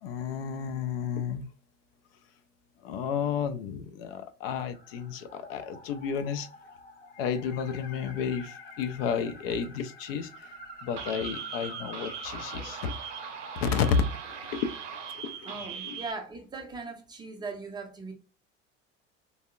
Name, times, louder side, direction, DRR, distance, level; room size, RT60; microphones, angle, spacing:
voice 1, 0.0-1.4 2.8-6.5 7.2-10.5 10.8-12.9 13.6-14.8 15.2-15.5 15.8-15.9, left 6 dB, 55° left, 0.4 m, -31 dB
sound 1, 4.7-16.2, left 1 dB, 25° left, 0.7 m, -48 dB
sound 2, 11.0-16.1, right 7 dB, 70° right, 0.6 m, -40 dB
voice 2, 15.4-18.1, right 4 dB, 10° right, 0.6 m, -39 dB
3.4 x 2.0 x 2.3 m
figure-of-eight pair, 70°, 38 cm